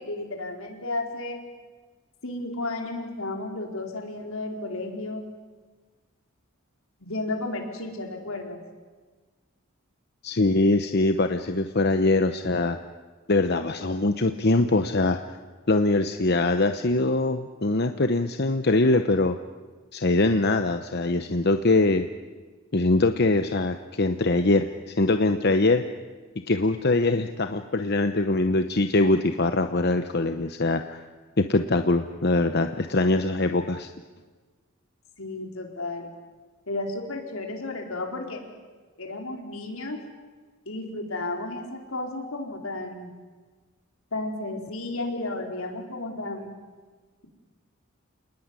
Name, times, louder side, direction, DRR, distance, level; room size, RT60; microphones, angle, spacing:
voice 1, 0.0-1.4 2.2-5.3 7.0-8.6 35.2-36.1 36.7-38.4 39.0-40.0 40.7-43.1 44.1-46.5, left 2 dB, 75° left, 2 dB, 4.6 m, -33 dB
voice 2, 10.2-12.8 13.3-15.2 15.7-19.4 19.9-22.1 22.7-25.8 26.5-31.0 31.4-33.9, left 2 dB, 50° left, 8 dB, 0.9 m, -23 dB
29.0 x 19.5 x 9.8 m, 1.4 s
head